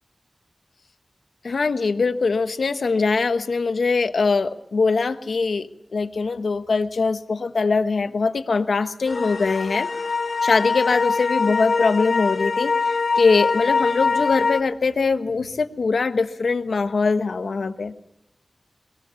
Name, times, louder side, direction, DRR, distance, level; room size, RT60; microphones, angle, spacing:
voice 1, 1.4-9.9 10.4-17.9, left 4 dB, 90° left, 9 dB, 1.2 m, -22 dB
sound 1, 9.1-14.6, left 4 dB, 70° left, 1.6 m, -23 dB
22.0 x 19.5 x 7.0 m, 0.81 s
wide cardioid pair, 55°, 0 cm